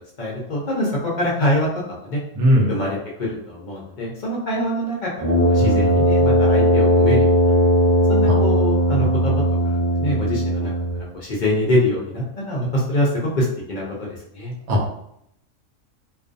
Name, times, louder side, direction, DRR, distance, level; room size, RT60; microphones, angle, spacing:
voice 1, 0.2-1.7 2.0-2.2 2.7-5.1 5.4-7.4 8.1-9.3 9.6-10.7 11.1-14.5, left 1 dB, 55° left, -4 dB, 0.5 m, -24 dB
voice 2, 2.4-2.7 5.6-6.0 8.3-8.4 14.7-15.0, equal, 85° right, 0 dB, 1.0 m, -20 dB
Brass instrument, 5.2-11.1, equal, 30° right, 0.3 m, -18 dB
2.4 x 2.3 x 2.5 m, 0.76 s
omnidirectional pair, 1.4 m